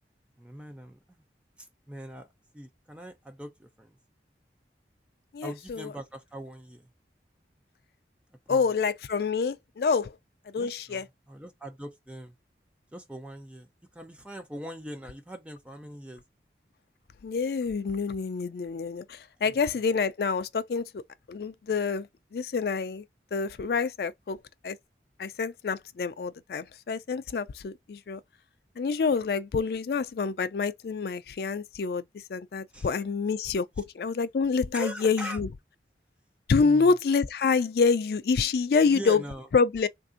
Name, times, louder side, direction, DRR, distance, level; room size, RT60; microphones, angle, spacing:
voice 1, 0.4-1.2 1.6-2.3 2.5-3.9 5.4-6.9 8.5-8.7 10.6-12.3 12.9-13.7 13.9-16.2 19.4-19.5 32.7-32.9 34.7-35.4 36.5-36.9 38.8-39.5, equal, 5° right, 0.5 m, -41 dB
voice 2, 5.3-5.9 8.5-10.1 10.5-11.1 17.2-21.0 21.3-22.1 22.3-23.0 23.3-24.4 24.6-24.8 25.2-28.2 28.8-32.0 32.3-35.5 36.5-39.2 39.5-39.9, left 5 dB, 60° left, 0.3 m, -27 dB
3.3 x 2.6 x 2.5 m
head